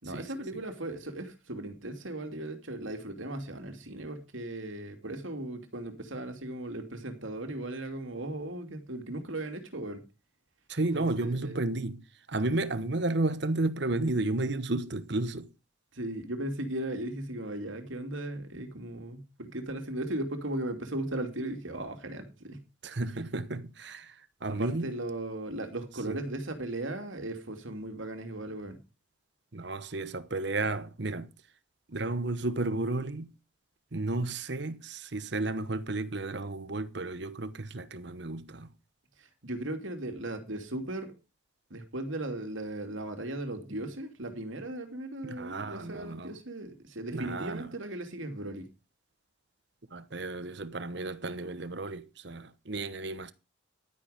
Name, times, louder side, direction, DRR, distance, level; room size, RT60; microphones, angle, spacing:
voice 1, 0.0-10.0 10.9-11.7 15.9-22.6 24.4-28.8 39.2-41.1 41.7-48.7, right 1 dB, 75° right, 2.8 m, -37 dB
voice 2, 10.7-15.5 22.8-24.9 26.1-26.2 29.5-31.3 31.9-33.3 33.9-38.7 45.2-46.4 47.1-47.7 49.9-53.3, right 2 dB, 55° right, 1.1 m, -33 dB
12.0 x 9.8 x 5.1 m
head